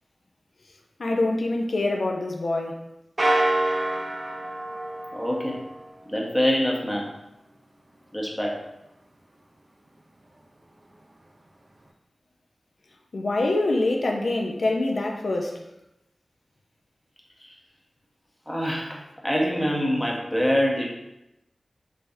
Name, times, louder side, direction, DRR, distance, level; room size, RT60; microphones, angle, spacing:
voice 1, 1.0-2.8 13.1-15.6, left 2 dB, 70° left, 2 dB, 0.5 m, -25 dB
sound 1, 3.2-5.9, right 1 dB, 30° right, 0.4 m, -26 dB
voice 2, 5.1-5.6 6.1-7.1 8.1-8.6 17.4-17.5 18.5-20.9, equal, 10° left, -1 dB, 0.7 m, -25 dB
3.4 x 3.3 x 2.6 m, 0.89 s
wide cardioid pair, 95°, 0 cm